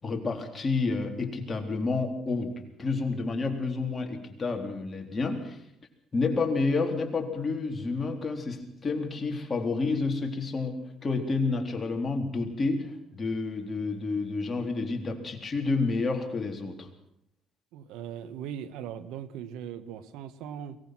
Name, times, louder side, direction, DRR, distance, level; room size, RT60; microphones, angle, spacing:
voice 1, 0.0-5.6 6.1-16.9, left 3 dB, 30° left, 3 dB, 3.7 m, -30 dB
voice 2, 17.7-20.8, right 9 dB, 85° right, 14 dB, 1.3 m, -39 dB
23.5 x 18.5 x 6.1 m, 0.77 s
cardioid pair, 100°, 0 cm